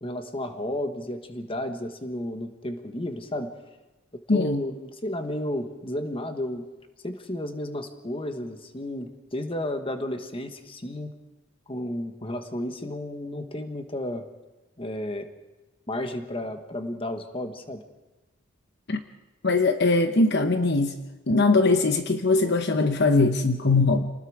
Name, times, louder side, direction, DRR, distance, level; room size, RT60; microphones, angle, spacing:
voice 1, 0.0-3.5 4.1-6.6 7.0-11.2 11.7-14.2 14.8-15.3 15.9-17.8, left 1 dB, 25° left, 7 dB, 1.5 m, -32 dB
voice 2, 4.3-4.6 18.9-19.0 19.4-20.9 21.3-24.1, left 3 dB, 55° left, 8 dB, 1.0 m, -21 dB
27.5 x 19.5 x 4.8 m, 1.1 s
head